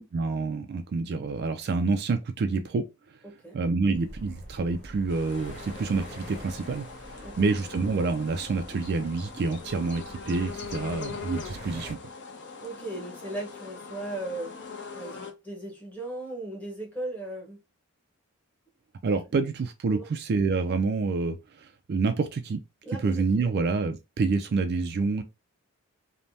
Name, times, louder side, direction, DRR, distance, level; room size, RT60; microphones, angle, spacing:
voice 1, 0.1-2.9 3.5-6.9 7.1-12.0 19.0-22.6 23.0-25.2, right 4 dB, 50° right, 0.3 m, -27 dB
voice 2, 3.2-3.6 7.2-7.5 12.6-14.6 14.9-17.6 19.9-20.1 22.8-23.7, right 2 dB, 5° left, 1.0 m, -37 dB
sound 1, 3.9-11.9, right 1 dB, 30° left, 1.6 m, -46 dB
sound 2, 5.1-15.3, left 5 dB, 50° left, 0.7 m, -42 dB
3.2 x 2.1 x 2.6 m
head